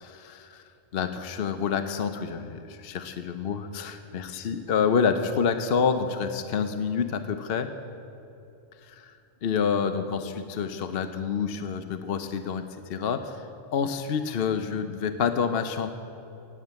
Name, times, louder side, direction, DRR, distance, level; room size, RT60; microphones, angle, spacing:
voice 1, 0.0-0.6 0.9-7.7 8.9-9.1 9.4-13.4 13.7-15.9, left 6 dB, 55° left, 8 dB, 0.8 m, -28 dB
18.5 x 7.4 x 8.2 m, 2.8 s
omnidirectional pair, 1.4 m